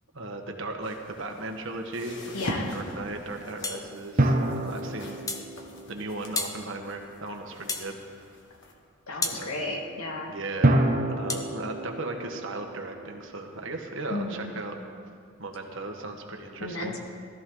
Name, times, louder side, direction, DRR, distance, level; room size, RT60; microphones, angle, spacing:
voice 1, 0.1-5.3 5.9-8.3 9.2-9.5 10.3-14.8 15.4-17.0, right 2 dB, 60° right, 3 dB, 1.5 m, -37 dB
sound 1, 0.8-8.7, left 1 dB, 60° left, 1.6 m, -42 dB
voice 2, 2.3-2.8 9.1-10.3 14.1-14.5 16.6-17.0, left 2 dB, 90° left, 1 dB, 2.0 m, -33 dB
sound 2, 3.6-3.9 5.3-5.5 6.4-6.6 7.7-7.9 9.2-9.4 11.3-11.5, left 3 dB, 15° left, 0.8 m, -31 dB
sound 3, 4.2-7.0 10.6-14.0, right 1 dB, 40° right, 1.0 m, -28 dB
17.5 x 13.5 x 3.9 m, 2.2 s
head